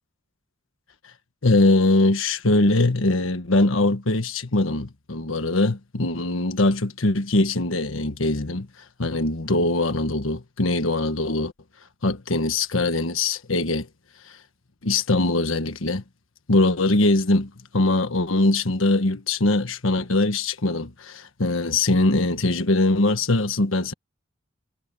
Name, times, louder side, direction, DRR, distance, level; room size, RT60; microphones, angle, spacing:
voice 1, 1.4-8.7 9.0-11.5 12.0-13.9 14.8-16.0 16.5-23.9, left 2 dB, 75° left, 1.4 m, -22 dB
head